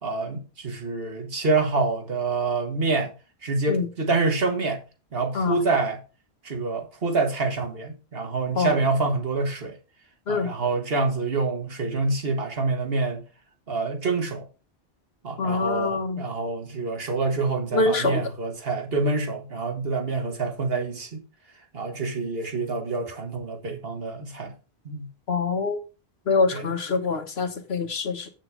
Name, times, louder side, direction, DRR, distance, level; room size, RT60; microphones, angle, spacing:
voice 1, 0.0-3.1 3.4-4.8 5.1-6.0 6.4-9.8 10.3-13.2 13.7-14.5 15.2-21.2 21.7-24.5 24.9-25.1 26.5-26.7, right 3 dB, 70° right, 1.9 m, -26 dB
voice 2, 15.4-16.2 17.7-18.2 25.3-25.8 26.3-28.3, left 4 dB, 80° left, 1.5 m, -25 dB
8.2 x 6.3 x 4.9 m
omnidirectional pair, 1.0 m